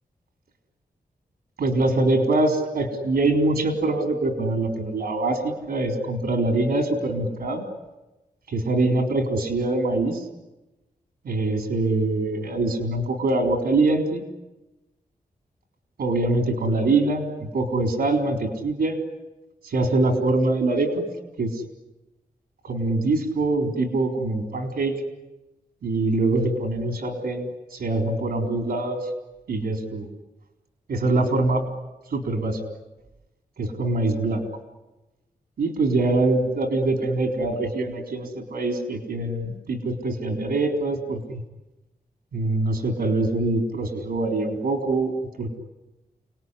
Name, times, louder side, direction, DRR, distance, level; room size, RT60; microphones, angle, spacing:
voice 1, 1.6-7.6 8.5-10.2 11.2-14.2 16.0-19.0 19.6-21.0 21.4-21.6 22.6-24.9 25.8-29.1 29.5-30.1 30.9-31.7 32.1-32.6 33.6-34.4 35.6-41.4 42.3-45.1 45.4-45.5, right 2 dB, 90° right, 4 dB, 3.9 m, -24 dB
29.5 x 19.0 x 9.9 m, 1.0 s
cardioid pair, 80°, 16 cm